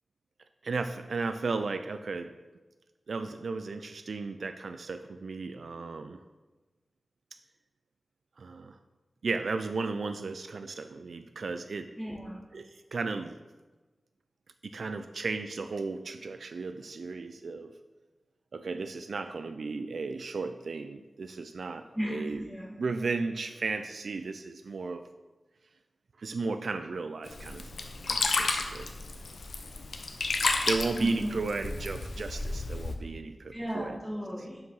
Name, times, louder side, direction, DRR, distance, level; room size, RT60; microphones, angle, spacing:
voice 1, 0.6-2.3 3.1-6.2 8.4-8.8 9.2-11.9 12.5-12.6 12.9-13.4 14.6-17.7 18.5-22.4 22.8-25.0 26.2-27.7 28.0-28.9 30.7-34.0, right 4 dB, 80° right, 9 dB, 0.3 m, -34 dB
voice 2, 12.0-12.4 21.9-22.8 31.0-31.4 33.5-34.6, equal, 10° right, -5 dB, 2.3 m, -35 dB
Sink (filling or washing), 27.3-32.9, left 3 dB, 85° left, 0.6 m, -32 dB
6.0 x 4.9 x 5.5 m, 1.2 s
wide cardioid pair, 75°, 0 cm